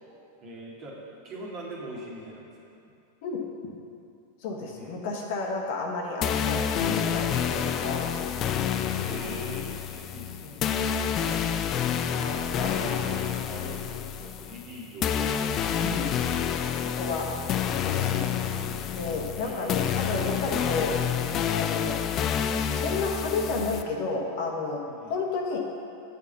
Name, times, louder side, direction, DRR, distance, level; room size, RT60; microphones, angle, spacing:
voice 1, 0.0-2.7 4.8-5.0 7.3-7.5 8.9-10.6 12.6-16.2 19.3-19.8 24.9-25.2, right 1 dB, 40° right, -3 dB, 1.8 m, -43 dB
voice 2, 4.4-8.3 10.4-10.6 11.3-11.7 12.1-13.0 15.8-16.1 17.0-17.3 17.8-18.3 18.9-21.0 21.5-22.0 22.6-24.8 25.1-25.6, left 3 dB, 50° left, 0 dB, 1.1 m, -32 dB
sound 1, 6.2-23.8, left 8 dB, 30° left, 0.4 m, -28 dB
8.0 x 5.2 x 6.7 m, 2.5 s
figure-of-eight pair, 90°, 0 cm